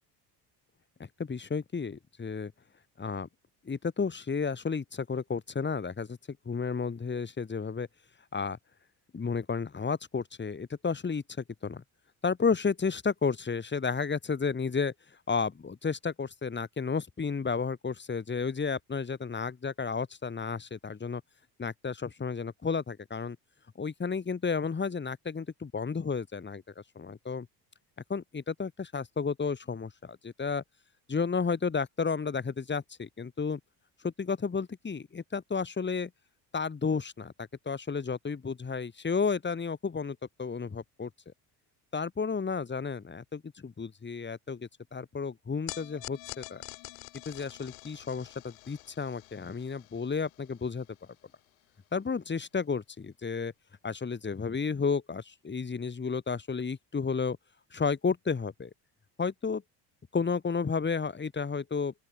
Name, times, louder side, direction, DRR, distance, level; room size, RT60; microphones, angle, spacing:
voice 1, 1.0-2.5 3.0-3.3 3.6-7.9 8.3-8.6 9.1-11.2 11.6-11.8 12.2-14.9 15.3-21.2 21.6-23.4 23.8-26.6 27.0-27.5 28.1-30.6 31.1-33.6 34.0-36.1 36.5-41.1 41.9-46.6 47.3-50.9 51.9-53.5 53.8-57.4 57.7-58.7 59.2-59.6 60.1-61.9, left 5 dB, 25° left, 2.0 m, -32 dB
sound 1, 45.7-52.1, left 30 dB, 80° left, 6.7 m, -47 dB
open air
supercardioid pair, 70°, 46 cm